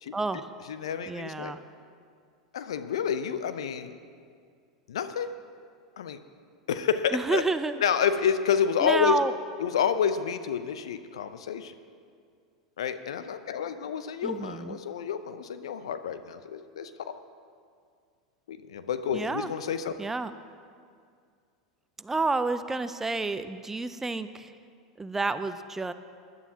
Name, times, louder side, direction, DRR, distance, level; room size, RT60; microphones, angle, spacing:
voice 1, 0.1-0.5 1.1-1.6 7.1-7.8 8.8-9.3 14.2-14.8 19.1-19.5 20.0-20.3 22.0-24.5 25.0-25.9, right 3 dB, 10° right, 12 dB, 0.5 m, -29 dB
voice 2, 0.7-1.5 2.5-4.0 4.9-5.3 6.0-6.2 6.7-7.4 7.8-9.2 9.6-11.7 12.8-17.1 18.5-19.9, left 8 dB, 70° left, 10 dB, 0.7 m, -29 dB
22.5 x 11.0 x 2.9 m, 2.2 s
figure-of-eight pair, 85°, 3 cm